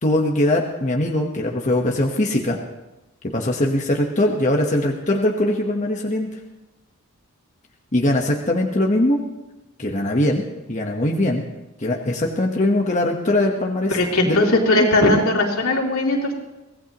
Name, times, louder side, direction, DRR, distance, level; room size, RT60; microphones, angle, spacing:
voice 1, 0.0-2.6 3.2-6.3 7.9-9.2 9.8-11.4 11.8-14.0 14.2-14.9, left 1 dB, 35° left, 1 dB, 1.2 m, -21 dB
voice 2, 13.9-16.3, left 2 dB, 85° left, -1 dB, 3.0 m, -19 dB
23.5 x 17.5 x 3.0 m, 1.0 s
head